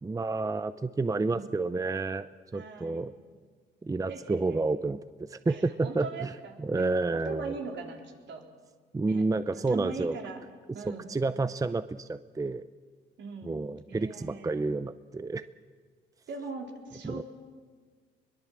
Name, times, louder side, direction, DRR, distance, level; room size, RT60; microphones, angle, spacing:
voice 1, 0.0-2.3 2.5-3.1 3.8-6.3 6.6-7.5 8.9-10.2 10.9-12.7 13.4-15.4 17.0-17.2, right 3 dB, 15° right, 13 dB, 0.6 m, -30 dB
voice 2, 1.2-1.6 2.5-3.1 4.1-4.6 5.5-6.8 7.1-8.4 9.0-9.2 9.7-10.4 10.7-11.1 13.2-13.6 13.9-14.8 16.3-17.2, right 4 dB, 65° right, 2 dB, 4.1 m, -41 dB
22.5 x 22.0 x 7.6 m, 1.5 s
cardioid pair, 90°, 20 cm